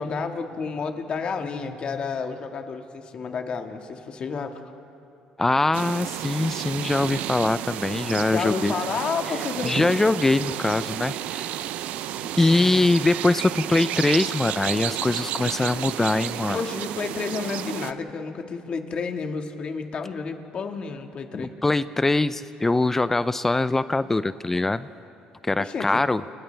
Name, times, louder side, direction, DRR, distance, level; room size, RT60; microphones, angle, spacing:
voice 1, 0.0-4.6 8.3-9.9 12.5-12.9 16.5-21.5 25.6-26.0, left 5 dB, 45° left, 4 dB, 1.8 m, -31 dB
voice 2, 5.4-8.7 9.6-11.5 12.4-16.6 21.4-24.9 25.4-26.2, left 2 dB, 15° left, 14 dB, 0.5 m, -23 dB
sound 1, 5.7-17.9, right 12 dB, 75° right, 0.6 m, -31 dB
30.0 x 29.0 x 3.4 m, 2.7 s
cardioid pair, 100°, 2 cm